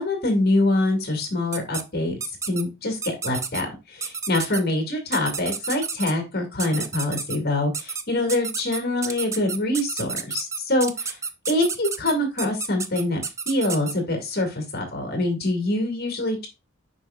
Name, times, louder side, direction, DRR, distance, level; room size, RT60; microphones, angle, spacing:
voice 1, 0.0-2.2 2.5-11.2 11.5-16.5, left 1 dB, 50° left, 4 dB, 2.0 m, -25 dB
sound 1, 1.5-1.8 2.2-2.6 3.0-3.6 4.0-4.6 5.1-6.1 6.6-7.4 7.7-8.0 8.3-13.9, right 5 dB, 15° right, 0.4 m, -30 dB
7.8 x 5.2 x 2.3 m, 0.25 s
head